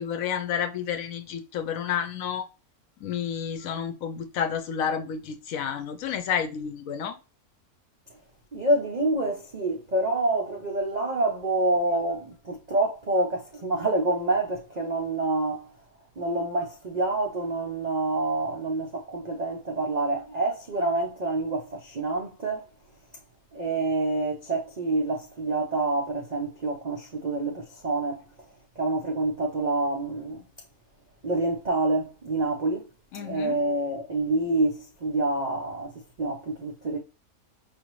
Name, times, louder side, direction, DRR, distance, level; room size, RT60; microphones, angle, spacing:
voice 1, 0.0-2.5 3.0-7.2 33.1-33.6, left 8 dB, 70° left, 1.0 m, -30 dB
voice 2, 8.5-15.7 16.2-22.7 23.5-28.2 28.8-30.4 31.2-32.9 33.1-37.0, right 2 dB, 55° right, 0.4 m, -27 dB
4.9 x 2.6 x 3.0 m
omnidirectional pair, 1.6 m